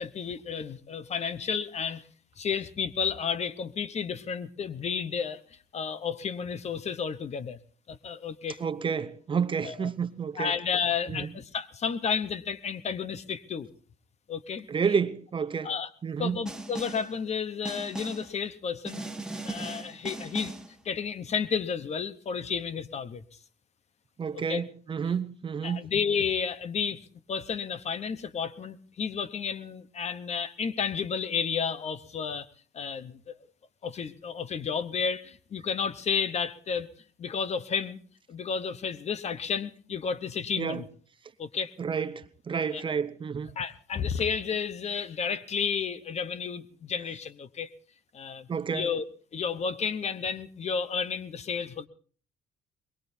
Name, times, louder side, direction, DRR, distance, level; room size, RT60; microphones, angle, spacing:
voice 1, 0.0-2.0 2.4-5.4 5.7-7.6 7.9-8.6 9.6-9.9 10.4-13.7 14.3-14.7 15.6-15.9 16.2-19.0 19.4-20.5 20.8-23.2 24.3-24.6 25.6-27.0 27.3-32.5 32.7-33.2 33.8-36.9 37.2-38.0 38.3-40.9 41.4-41.7 42.7-42.8 43.6-47.7 48.1-49.0 49.3-51.9, left 6 dB, 40° left, 1.0 m, -32 dB
voice 2, 8.6-10.5 11.1-11.3 14.7-15.7 16.0-16.5 24.2-25.8 40.6-40.9 41.8-43.6 48.5-49.0, right 6 dB, 30° right, 0.8 m, -30 dB
Snare drum, 16.5-17.1 17.7-18.3 18.9-20.7, right 2 dB, 5° right, 1.5 m, -38 dB
22.5 x 22.0 x 2.7 m
cardioid pair, 110°, 17 cm